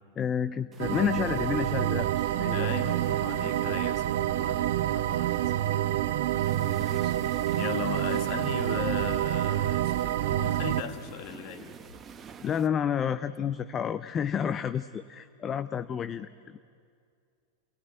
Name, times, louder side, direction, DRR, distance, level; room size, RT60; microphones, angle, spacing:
voice 1, 0.2-2.9 3.4-3.8 12.4-16.6, left 8 dB, 25° left, 13 dB, 0.6 m, -30 dB
sound 1, 0.7-12.7, right 7 dB, 20° right, 1.0 m, -47 dB
sound 2, 0.8-10.8, right 12 dB, 55° right, 0.7 m, -28 dB
voice 2, 2.5-5.4 7.0-7.1 7.5-11.7, left 9 dB, 45° left, 8 dB, 1.7 m, -38 dB
sound 3, 4.3-4.8 5.2-5.6 6.1-6.5 7.0-7.4 7.8-8.5 8.8-9.3 9.8-10.2 10.8-11.2 11.8-12.3, left 3 dB, 80° left, 7.2 m, -54 dB
29.5 x 18.5 x 9.2 m, 2.3 s
figure-of-eight pair, 90°, 0 cm